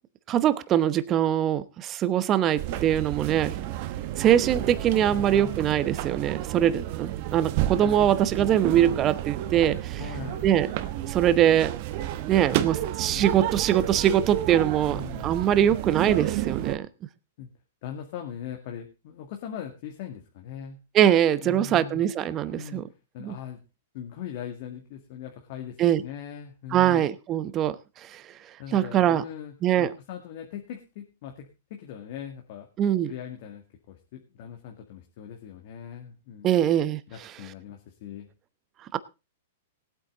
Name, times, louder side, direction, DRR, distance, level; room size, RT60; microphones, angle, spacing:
voice 1, 0.3-3.6 4.2-10.0 10.4-10.7 11.1-11.7 12.3-16.9 20.9-22.8 23.2-23.3 25.8-26.0 26.7-28.2 28.7-29.2 29.6-29.9 32.8-33.1 36.4-37.0 38.9-39.0, right 10 dB, 25° right, 15 dB, 0.9 m, -23 dB
sound 1, 2.6-16.8, right 13 dB, 45° right, 1.1 m, -31 dB
voice 2, 4.6-5.8 10.0-10.5 13.1-13.3 14.9-15.3 17.4-17.5 17.8-20.8 21.4-22.1 22.5-22.9 23.1-23.6 23.9-27.0 28.6-32.7 33.1-36.6 37.1-38.3, left 9 dB, 50° left, 3 dB, 2.1 m, -40 dB
18.5 x 8.6 x 3.9 m, 0.29 s
hypercardioid pair, 140°, 0 cm